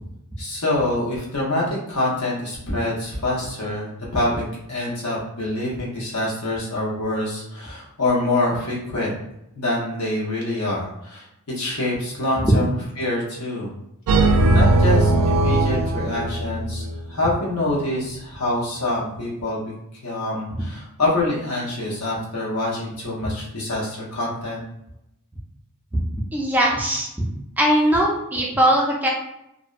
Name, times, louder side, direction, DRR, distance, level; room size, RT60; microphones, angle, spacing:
voice 1, 0.4-4.4 4.7-9.2 9.5-13.7 14.2-14.3 14.5-19.7 20.0-24.6, left 1 dB, 85° left, -5 dB, 1.0 m, -25 dB
sound 1, 14.1-17.0, right 2 dB, 80° right, 0.3 m, -19 dB
voice 2, 26.3-27.1 27.6-29.1, right 1 dB, 10° right, -3 dB, 0.4 m, -19 dB
2.5 x 2.1 x 2.4 m, 0.83 s
head